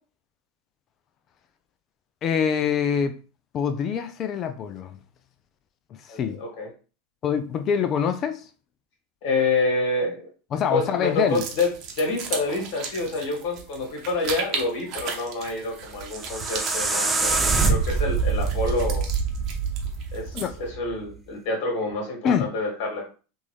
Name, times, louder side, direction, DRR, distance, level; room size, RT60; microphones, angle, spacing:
voice 1, 2.2-3.1 3.5-5.0 6.1-6.4 7.2-8.5 10.5-11.4 20.3-20.5 22.2-22.5, left 7 dB, 40° left, 0.5 m, -25 dB
voice 2, 6.1-6.7 9.2-10.3 10.7-11.7 12.0-19.1 20.1-23.1, left 2 dB, 60° left, 1.8 m, -27 dB
sound 1, 11.3-20.7, right 6 dB, 50° right, 0.9 m, -36 dB
sound 2, 16.0-21.0, right 4 dB, 15° right, 0.6 m, -25 dB
3.7 x 2.6 x 3.1 m
hypercardioid pair, 110°, 0 cm